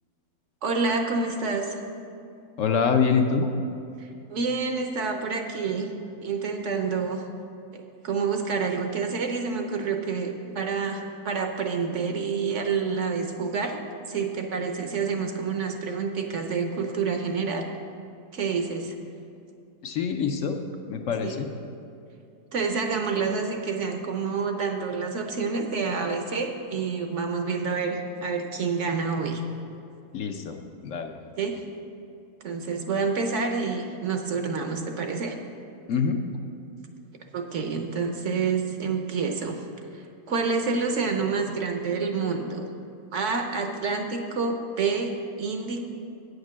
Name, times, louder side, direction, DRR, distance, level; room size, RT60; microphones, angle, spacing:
voice 1, 0.6-1.7 4.0-5.9 6.2-7.2 7.7-13.8 14.1-17.7 18.3-18.9 21.2-21.4 22.5-29.4 31.4-31.6 32.4-35.4 37.3-39.6 40.3-42.7 43.1-45.1 45.4-45.9, right 5 dB, 60° right, 4 dB, 0.9 m, -28 dB
voice 2, 2.6-3.5 19.8-20.6 20.9-21.5 30.1-30.6 30.8-31.1 35.9-36.2, left 6 dB, 65° left, 4 dB, 0.9 m, -25 dB
8.6 x 6.6 x 6.1 m, 2.5 s
omnidirectional pair, 1.6 m